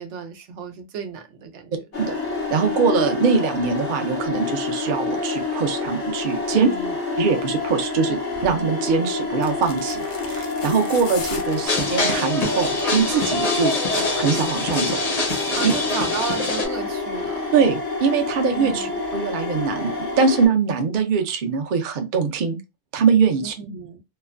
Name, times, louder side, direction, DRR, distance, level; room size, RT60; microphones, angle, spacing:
voice 1, 0.0-1.8 6.5-6.9 15.5-17.5 18.5-18.9 23.4-24.0, right 6 dB, 80° right, 0.9 m, -33 dB
sound 1, 1.9-20.5, left 3 dB, 85° left, 1.3 m, -28 dB
voice 2, 2.5-6.7 7.2-15.0 15.6-15.7 17.5-22.6 22.9-23.5, right 5 dB, 55° right, 0.7 m, -22 dB
sound 2, 8.3-8.6 9.3-12.3 12.7-13.0 13.3-13.4, left 4 dB, 60° left, 0.3 m, -37 dB
sound 3, 11.6-16.6, left 2 dB, 40° left, 0.7 m, -25 dB
3.1 x 2.1 x 2.4 m
omnidirectional pair, 1.2 m